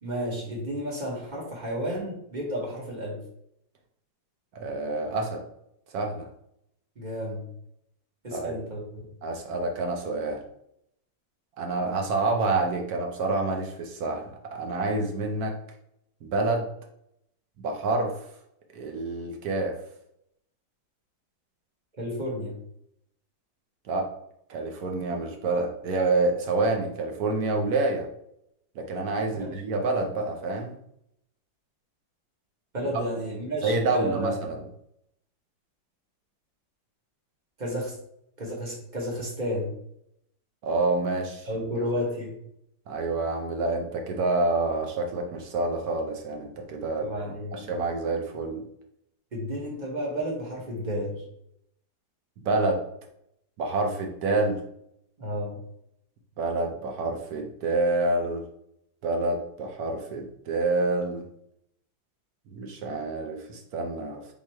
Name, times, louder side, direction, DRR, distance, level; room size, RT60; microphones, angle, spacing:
voice 1, 0.0-3.2 7.0-7.5 8.2-9.1 22.0-22.5 29.4-29.5 32.7-34.6 37.6-38.0 38.4-39.7 41.4-42.4 47.0-47.7 49.3-51.2 55.2-55.6, equal, 30° right, -2 dB, 1.0 m, -32 dB
voice 2, 4.5-5.4 5.9-6.3 8.3-8.6 9.2-10.4 11.6-15.5 16.2-16.7 17.6-18.2 18.7-19.7 23.9-24.1 24.5-28.1 28.8-30.8 33.6-34.6 40.6-41.5 42.9-47.1 47.5-48.6 52.4-52.8 53.6-54.6 56.4-58.4 59.0-61.3 62.5-64.2, right 2 dB, 65° right, 3 dB, 1.0 m, -27 dB
3.7 x 3.1 x 4.3 m, 0.75 s
omnidirectional pair, 2.0 m